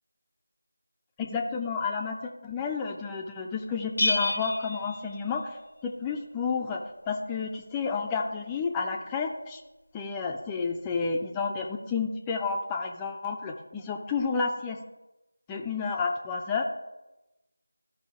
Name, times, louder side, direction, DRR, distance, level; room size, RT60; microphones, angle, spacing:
voice 1, 1.2-5.6 5.8-9.6 9.9-14.8 15.5-16.6, left 5 dB, 10° left, 2 dB, 0.4 m, -31 dB
Bell, 4.0-5.8, left 2 dB, 55° left, 0.6 m, -30 dB
14.0 x 5.6 x 3.5 m, 1.0 s
figure-of-eight pair, 165°, 0 cm